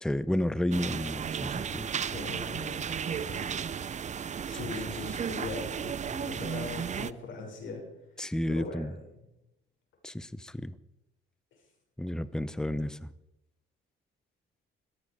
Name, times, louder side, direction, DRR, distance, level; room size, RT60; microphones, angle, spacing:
voice 1, 0.0-1.9 8.2-8.9 10.0-10.7 12.0-13.1, left 1 dB, 5° left, 16 dB, 0.7 m, -31 dB
sound 1, 0.7-7.1, right 7 dB, 35° right, 0.6 m, -34 dB
voice 2, 2.1-3.5 4.4-7.8 8.5-9.2, left 4 dB, 75° left, 1 dB, 6.4 m, -40 dB
17.5 x 13.0 x 4.9 m, 0.88 s
cardioid pair, 90°, 20 cm